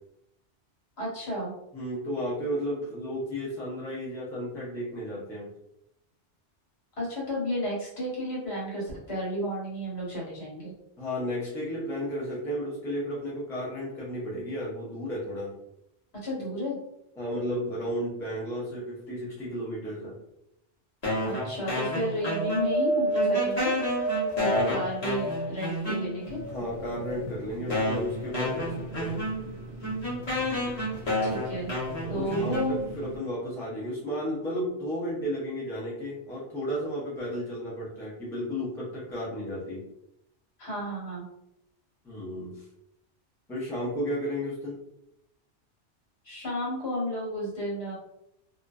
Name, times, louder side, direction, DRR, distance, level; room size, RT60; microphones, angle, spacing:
voice 1, 1.0-1.5 7.0-10.7 16.2-16.8 21.2-23.7 24.4-26.4 31.2-31.7 32.1-32.8 40.6-41.3 46.2-47.9, equal, 60° left, -5 dB, 1.3 m, -32 dB
voice 2, 1.7-5.5 11.0-15.5 17.2-20.2 24.4-24.8 26.5-29.2 32.0-39.8 42.0-42.6 43.5-44.8, equal, 5° left, -7 dB, 0.5 m, -33 dB
sound 1, 21.0-22.9 23.1-26.4 27.1-27.2 27.7-33.1, left 1 dB, 35° left, 0.9 m, -31 dB
Wind, 22.2-25.7 26.3-27.3 28.1-28.2, right 2 dB, 85° left, 0.9 m, -29 dB
sound 2, 26.2-33.2, right 1 dB, 55° right, 0.7 m, -42 dB
2.5 x 2.1 x 2.3 m, 0.82 s
omnidirectional pair, 1.2 m